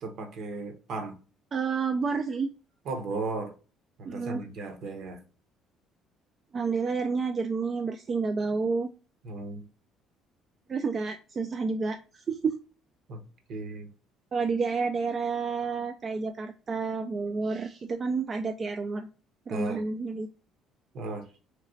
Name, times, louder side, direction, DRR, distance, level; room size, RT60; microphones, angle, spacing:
voice 1, 0.0-1.2 2.8-3.5 4.0-5.2 9.2-9.6 13.1-13.2 13.5-13.9 19.5-19.8 20.9-21.2, right 3 dB, 60° right, 0.9 m, -35 dB
voice 2, 1.5-2.5 4.0-4.4 6.5-8.9 10.7-12.6 14.3-19.1 19.5-20.3, right 4 dB, 35° right, 0.3 m, -30 dB
3.2 x 2.9 x 2.6 m
cardioid pair, 105°, 0 cm